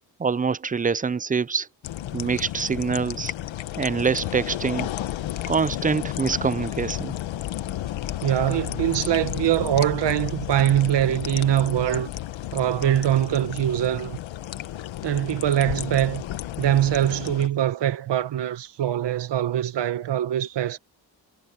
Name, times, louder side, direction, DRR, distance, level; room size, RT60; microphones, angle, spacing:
voice 1, 0.2-1.7 2.1-3.3 3.8-4.9 5.5-7.1, right 5 dB, 20° right, 0.5 m, -25 dB
sound 1, 1.8-17.5, left 13 dB, 90° left, 1.2 m, -32 dB
voice 2, 8.2-12.1 12.5-14.2 15.0-16.2 16.6-20.8, right 11 dB, 65° right, 1.1 m, -23 dB
cardioid pair, 75°, 45 cm